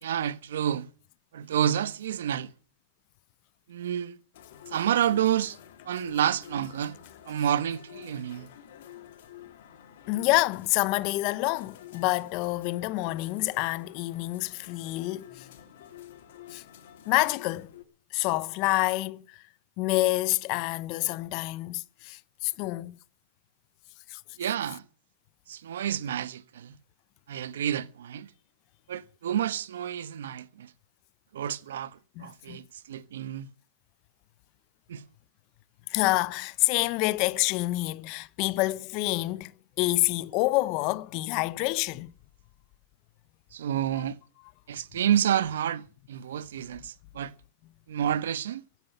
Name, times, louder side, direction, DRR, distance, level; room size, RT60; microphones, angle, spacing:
voice 1, 0.0-0.9 1.3-2.5 3.7-4.2 4.7-5.6 5.8-7.0 7.3-8.5 24.4-24.8 25.5-26.8 27.3-28.3 28.9-30.7 31.3-33.5 34.9-35.0 43.5-44.2 44.7-47.3 47.9-48.6, right 10 dB, 75° right, 1.2 m, -29 dB
sound 1, 4.3-17.8, left 11 dB, 65° left, 3.0 m, -49 dB
voice 2, 10.1-15.5 16.5-16.6 17.1-17.7 18.1-19.4 19.8-23.0 24.1-24.2 32.2-32.6 35.9-39.5 39.8-42.1, left 20 dB, 45° left, 0.7 m, -27 dB
16.0 x 9.2 x 6.8 m
hypercardioid pair, 135°, 0 cm